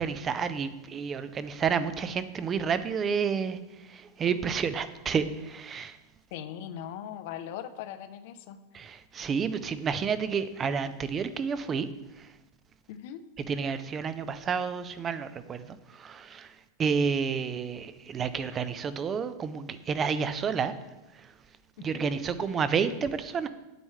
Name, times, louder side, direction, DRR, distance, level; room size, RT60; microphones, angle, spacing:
voice 1, 0.0-6.0 8.7-11.9 12.2-12.3 13.5-16.5 16.8-20.7 21.1-21.3 21.8-23.5, right 6 dB, 20° right, 13 dB, 0.4 m, -30 dB
voice 2, 6.3-8.6 12.9-13.2 21.8-22.1, left 10 dB, 55° left, 10 dB, 0.6 m, -40 dB
8.9 x 7.8 x 3.2 m, 1.0 s
supercardioid pair, 165°, 0 cm